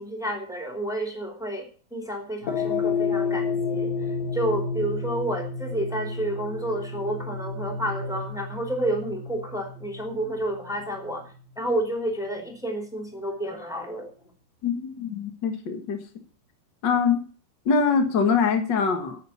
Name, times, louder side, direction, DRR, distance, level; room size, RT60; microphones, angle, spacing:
voice 1, 0.0-3.9 4.3-11.3 11.6-14.1, right 1 dB, ahead, 2 dB, 2.3 m, -30 dB
sound 1, 2.4-10.9, left 4 dB, 65° left, 2.9 m, -30 dB
voice 2, 14.6-16.0 16.8-17.2 17.6-19.2, left 5 dB, 80° left, 7 dB, 1.0 m, -23 dB
10.0 x 9.4 x 7.1 m, 0.39 s
omnidirectional pair, 4.7 m